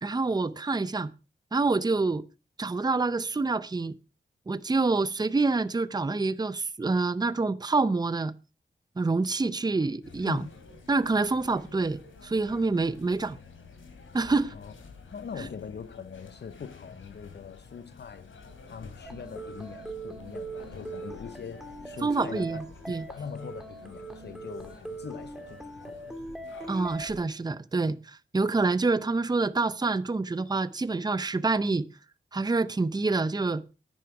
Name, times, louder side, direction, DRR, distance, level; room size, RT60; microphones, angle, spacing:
voice 1, 0.0-1.1 1.5-2.2 2.6-3.9 4.5-8.3 9.0-10.5 10.9-13.4 14.1-14.5 15.4-15.5 22.0-23.0 26.7-31.9 32.3-33.6, right 3 dB, 20° right, 0.6 m, -27 dB
sound 1, 10.0-27.2, left 4 dB, 80° left, 2.9 m, -50 dB
voice 2, 15.1-18.3 18.7-22.6 23.1-25.6 25.8-26.1, left 6 dB, 55° left, 0.7 m, -42 dB
sound 2, 19.1-27.1, right 2 dB, ahead, 2.0 m, -41 dB
10.5 x 9.9 x 4.8 m
wide cardioid pair, 85°, 20 cm